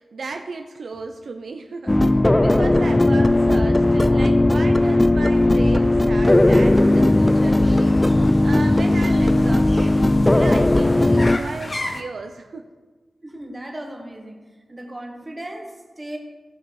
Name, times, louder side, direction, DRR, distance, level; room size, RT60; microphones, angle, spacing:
voice 1, 0.0-10.0 10.3-12.7, right 4 dB, 65° right, 5 dB, 0.7 m, -35 dB
sound 1, 1.9-11.4, left 1 dB, 15° left, 0.4 m, -17 dB
sound 2, 6.2-12.0, left 2 dB, 30° left, 1.1 m, -35 dB
voice 2, 13.2-14.4 14.7-16.2, right 1 dB, 20° right, 1 dB, 1.9 m, -36 dB
17.0 x 6.1 x 4.8 m, 1.3 s
wide cardioid pair, 120°, 0 cm